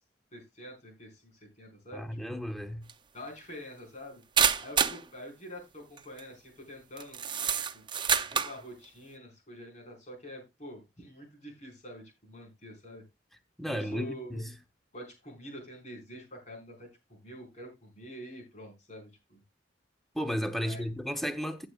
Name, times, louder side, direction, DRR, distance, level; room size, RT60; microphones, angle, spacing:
voice 1, 0.3-2.4 3.1-4.2 4.6-7.2 7.5-13.0 13.6-14.4 14.9-19.4 20.6-20.8, equal, 40° left, 5.1 m, -46 dB
voice 2, 1.9-2.8 13.6-14.5 20.1-21.7, equal, ahead, 0.9 m, -33 dB
sound 1, 2.9-3.0 4.4-5.0 6.0-6.2 7.0-8.6, right 7 dB, 25° right, 0.6 m, -27 dB
15.5 x 7.7 x 2.4 m
head